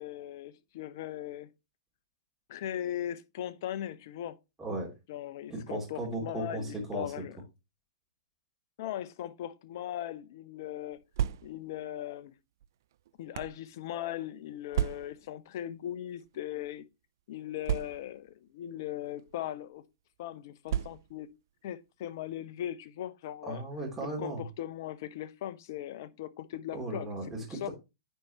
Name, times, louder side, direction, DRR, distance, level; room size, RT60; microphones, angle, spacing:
voice 1, 0.0-1.5 2.5-4.4 5.1-7.4 8.8-11.0 11.4-12.3 13.2-16.8 17.3-19.8 20.2-21.3 21.6-23.6 24.0-27.1 27.5-27.7, left 12 dB, 55° left, 0.6 m, -39 dB
voice 2, 4.6-4.9 5.5-7.2 23.5-24.4 26.7-27.7, right 2 dB, 10° right, 2.9 m, -36 dB
sound 1, 10.9-11.8 12.6-13.6 14.7-15.3 16.2-16.4 16.6-16.7 17.6-18.3 19.2-19.4 20.7-21.3, right 10 dB, 60° right, 0.3 m, -33 dB
9.7 x 4.6 x 2.9 m
figure-of-eight pair, 110°, 2 cm